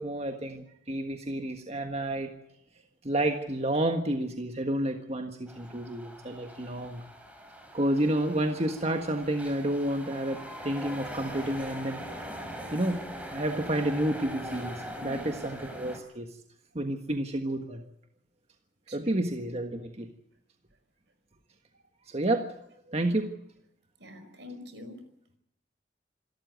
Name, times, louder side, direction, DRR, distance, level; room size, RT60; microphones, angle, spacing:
voice 1, 0.0-2.3 3.0-7.0 7.7-12.0 12.7-13.0 13.3-16.3 16.7-17.8 18.9-20.1 22.1-22.5 22.9-23.3, right 1 dB, 35° right, 5 dB, 1.6 m, -30 dB
sound 1, 5.5-16.0, equal, 10° right, 4.8 m, -42 dB
voice 2, 15.0-15.3 18.9-19.2 24.0-25.0, left 2 dB, 70° right, 9 dB, 5.2 m, -44 dB
27.0 x 13.5 x 9.4 m, 0.75 s
head